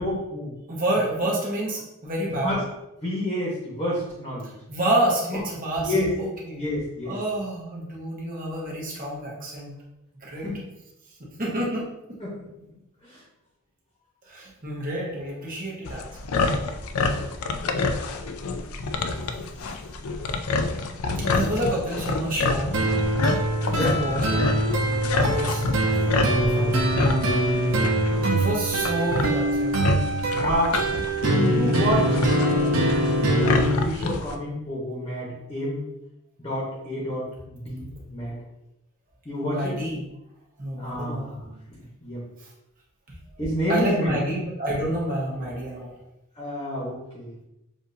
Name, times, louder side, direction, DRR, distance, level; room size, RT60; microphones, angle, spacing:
voice 1, 0.0-0.5 2.4-2.6 3.0-4.5 5.3-5.4 5.8-6.1 6.6-7.2 10.4-10.6 12.2-12.4 13.0-13.2 23.7-24.2 24.8-25.3 30.4-30.8 31.5-32.9 33.3-35.8 36.4-38.4 39.2-39.8 40.8-42.3 43.4-44.1 46.4-47.3, equal, 25° left, -6 dB, 1.1 m, -29 dB
voice 2, 0.7-2.6 4.7-6.6 7.0-9.7 10.2-10.5 11.2-11.8 14.3-16.0 21.2-23.0 23.6-24.4 25.1-27.0 28.3-29.8 39.4-40.1 40.6-41.3 43.7-45.9, right 1 dB, 40° right, -4 dB, 1.2 m, -28 dB
sound 1, 15.9-34.4, left 3 dB, 85° left, 0.4 m, -28 dB
sound 2, 22.7-33.7, right 1 dB, 85° right, 0.8 m, -23 dB
6.9 x 2.7 x 2.7 m, 0.90 s
head